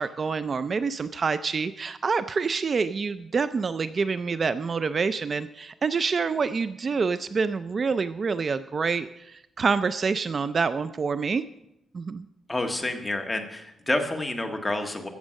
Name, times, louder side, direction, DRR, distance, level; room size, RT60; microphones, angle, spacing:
voice 1, 0.0-11.4 11.9-12.3, right 5 dB, 40° right, 13 dB, 0.4 m, -27 dB
voice 2, 12.5-15.1, left 2 dB, 15° left, 4 dB, 1.5 m, -29 dB
15.0 x 7.3 x 6.4 m, 0.84 s
cardioid pair, 125°, 0 cm